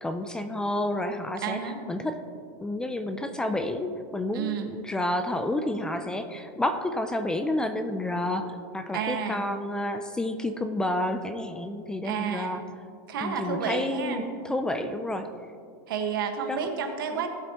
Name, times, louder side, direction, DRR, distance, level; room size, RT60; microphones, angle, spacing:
voice 1, 0.0-1.6 1.9-2.2 2.6-12.6 13.2-15.3 16.5-16.6, left 1 dB, 5° left, 8 dB, 0.4 m, -30 dB
voice 2, 1.4-1.8 4.3-4.7 8.9-9.5 12.0-12.6 13.1-14.2 15.9-17.3, right 7 dB, 80° right, 4 dB, 1.5 m, -30 dB
17.5 x 7.8 x 3.0 m, 2.3 s
supercardioid pair, 155°, 11 cm